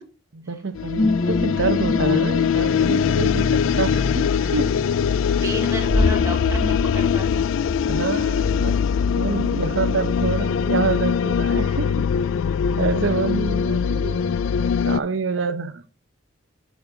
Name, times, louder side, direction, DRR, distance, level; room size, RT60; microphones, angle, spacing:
voice 1, 0.3-4.7 7.8-8.8 9.1-12.1 12.8-14.2 14.9-15.9, right 4 dB, 80° right, 0.8 m, -27 dB
sound 1, 0.7-15.0, left 7 dB, 85° left, 0.3 m, -22 dB
sound 2, 1.0-11.4 11.8-11.9, left 2 dB, 45° left, 0.9 m, -28 dB
voice 2, 5.4-7.5, equal, 15° right, 1.3 m, -31 dB
7.2 x 6.3 x 3.8 m
head